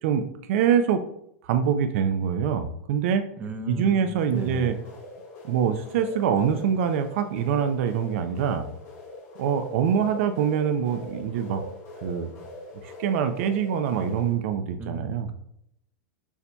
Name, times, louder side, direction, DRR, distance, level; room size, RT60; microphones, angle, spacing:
voice 1, 0.0-1.0 1.4-3.3 3.7-4.7 5.4-8.7 9.4-11.6 12.0-12.3 12.8-15.3, right 8 dB, 65° right, 8 dB, 0.4 m, -24 dB
voice 2, 3.4-4.7 14.8-15.3, right 3 dB, 20° right, 6 dB, 0.6 m, -35 dB
sound 1, 4.1-14.3, left 2 dB, 35° left, 1.3 m, -42 dB
6.9 x 2.7 x 2.2 m, 0.73 s
hypercardioid pair, 125°, 8 cm